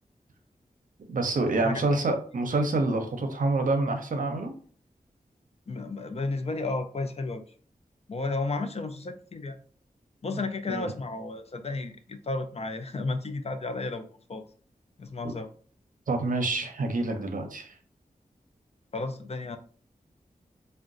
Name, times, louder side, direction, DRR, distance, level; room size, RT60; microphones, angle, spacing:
voice 1, 1.1-4.5 10.3-10.4 10.7-10.9 16.1-17.8, right 2 dB, 65° right, 5 dB, 0.6 m, -27 dB
voice 2, 1.6-2.0 5.7-7.4 8.1-9.6 10.2-14.4 15.0-15.5 18.9-19.6, left 3 dB, 45° left, 8 dB, 0.4 m, -33 dB
3.7 x 2.2 x 2.5 m, 0.44 s
cardioid pair, 55°, 15 cm